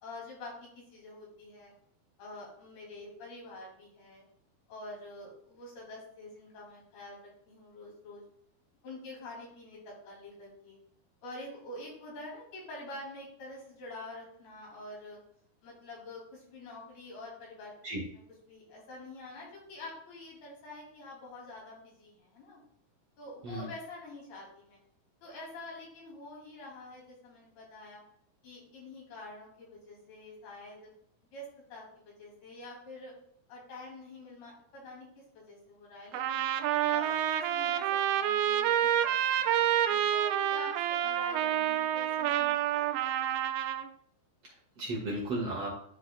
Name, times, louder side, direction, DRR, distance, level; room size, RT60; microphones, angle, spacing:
voice 1, 0.0-1.7 2.2-4.2 4.7-7.2 7.5-8.2 8.8-10.8 11.2-15.2 15.6-17.7 18.5-22.6 23.2-24.8 25.2-28.0 28.4-30.9 31.2-33.1 33.5-36.5 36.9-42.9, left 2 dB, 80° left, -4 dB, 4.5 m, -47 dB
Trumpet, 36.1-43.9, right 11 dB, 80° right, 2.3 m, -28 dB
voice 2, 44.4-45.7, right 1 dB, 55° right, -4 dB, 1.8 m, -35 dB
11.0 x 4.6 x 2.2 m, 0.69 s
omnidirectional pair, 4.4 m